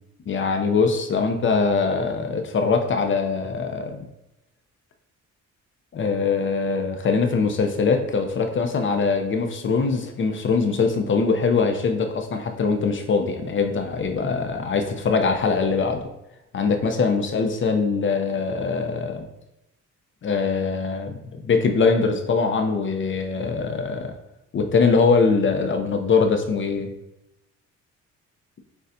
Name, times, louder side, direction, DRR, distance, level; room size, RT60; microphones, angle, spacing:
voice 1, 0.3-4.0 5.9-16.1 16.5-19.2 20.2-24.1 24.5-26.9, left 4 dB, 40° left, 5 dB, 0.6 m, -22 dB
6.6 x 2.3 x 2.6 m, 0.89 s
cardioid pair, 90°, 30 cm